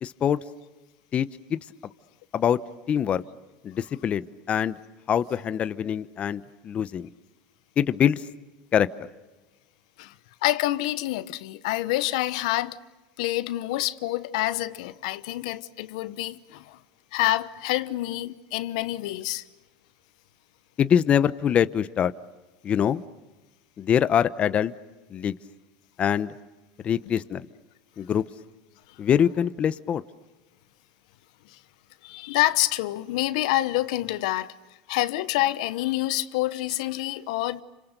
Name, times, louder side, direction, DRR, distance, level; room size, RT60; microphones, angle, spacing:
voice 1, 0.0-0.4 1.1-1.6 2.3-2.6 2.9-3.2 3.6-4.7 5.1-7.1 7.8-8.2 8.7-8.9 20.8-22.1 22.6-23.0 23.8-24.7 25.1-25.3 26.0-26.3 26.8-27.5 28.0-28.2 29.0-30.0, left 9 dB, 35° left, 0.9 m, -24 dB
voice 2, 10.4-12.8 13.2-16.8 17.1-19.4 31.5-31.6 32.0-34.5 34.9-37.6, left 16 dB, 75° left, 1.0 m, -27 dB
30.0 x 26.5 x 6.7 m
supercardioid pair, 115°, 4 cm